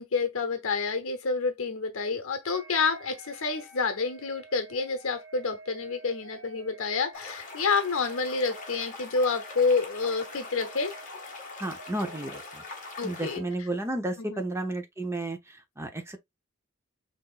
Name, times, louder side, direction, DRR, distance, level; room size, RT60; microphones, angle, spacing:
voice 1, 0.0-10.9 13.0-13.4 14.2-14.4, left 4 dB, 65° left, 0.8 m, -28 dB
sound 1, 2.4-13.6, right 3 dB, 70° right, 1.4 m, -51 dB
sound 2, 7.1-13.4, left 3 dB, 40° left, 1.4 m, -42 dB
voice 2, 11.6-12.6 13.0-16.2, right 2 dB, 10° right, 0.8 m, -33 dB
5.9 x 2.6 x 2.4 m
head